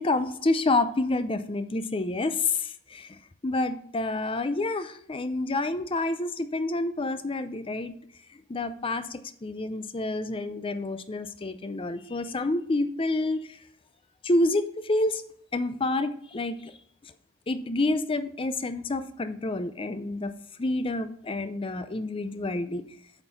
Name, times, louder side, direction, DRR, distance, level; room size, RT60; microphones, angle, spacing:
voice 1, 0.0-3.2 3.4-8.0 8.5-13.4 14.2-15.2 15.5-16.7 17.0-17.1 17.5-20.3 20.6-22.8, left 2 dB, 25° left, 11 dB, 0.5 m, -28 dB
8.7 x 4.5 x 5.7 m, 0.64 s
head